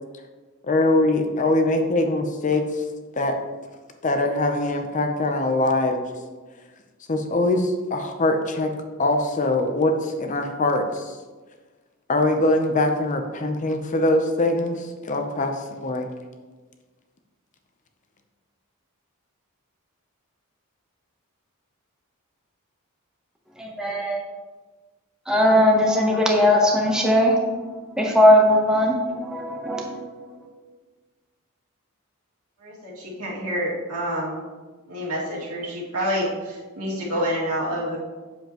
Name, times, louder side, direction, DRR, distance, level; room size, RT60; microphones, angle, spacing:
voice 1, 0.7-2.6 3.2-3.4 4.0-6.1 7.1-8.7 9.0-11.2 12.1-15.5 15.8-16.1, left 2 dB, 35° left, 5 dB, 0.6 m, -22 dB
voice 2, 23.6-24.2 25.3-27.5 28.0-30.0, left 1 dB, 5° right, -1 dB, 0.9 m, -19 dB
voice 3, 32.6-34.4 34.9-38.0, equal, 80° right, -5 dB, 2.3 m, -28 dB
7.9 x 7.0 x 3.0 m, 1.3 s
head